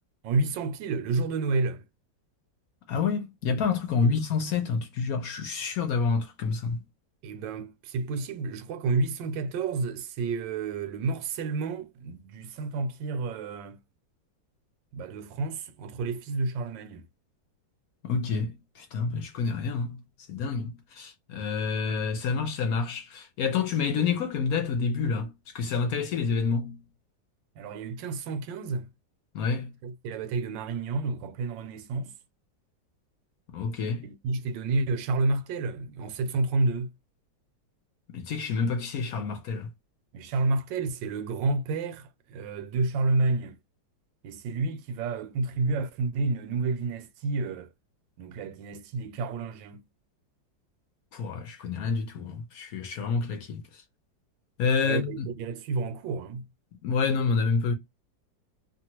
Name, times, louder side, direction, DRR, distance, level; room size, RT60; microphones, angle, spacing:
voice 1, 0.2-1.8 4.0-4.2 7.2-13.8 14.9-17.0 27.6-28.9 29.8-32.1 34.0-36.9 40.1-43.6 44.2-47.7 48.2-49.8 54.8-56.4, right 3 dB, 80° right, 1.3 m, -30 dB
voice 2, 2.9-6.8 18.0-20.0 20.3-26.8 29.3-29.7 33.5-34.1 38.1-39.7 51.1-53.6 54.6-55.3 56.8-57.7, left 5 dB, 65° left, 0.9 m, -28 dB
2.9 x 2.4 x 2.8 m
omnidirectional pair, 2.0 m